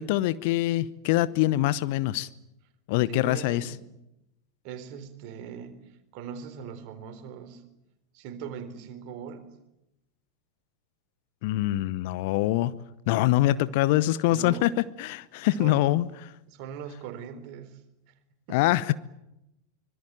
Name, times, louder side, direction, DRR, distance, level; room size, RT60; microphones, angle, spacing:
voice 1, 0.0-2.3 2.9-3.7 11.4-12.7 13.1-16.3 18.5-18.9, left 16 dB, 50° left, 0.9 m, -24 dB
voice 2, 3.1-3.9 4.6-7.6 8.1-9.6 14.3-14.8 15.5-16.0 16.5-17.8 18.1-18.2 18.5-18.6, right 7 dB, 45° right, 3.9 m, -40 dB
25.0 x 22.0 x 9.0 m
figure-of-eight pair, 90°, 0 cm